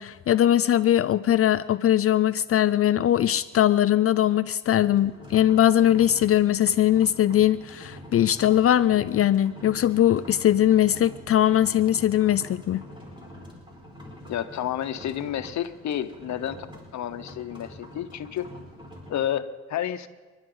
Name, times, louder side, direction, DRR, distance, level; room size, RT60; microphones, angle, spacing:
voice 1, 0.0-12.8, left 11 dB, 50° left, 0.5 m, -21 dB
sound 1, 4.8-19.2, left 1 dB, 15° right, 5.4 m, -45 dB
voice 2, 14.3-16.6 16.9-18.5 19.1-20.1, left 10 dB, 65° left, 1.1 m, -30 dB
29.0 x 11.5 x 3.9 m
cardioid pair, 90°, 30 cm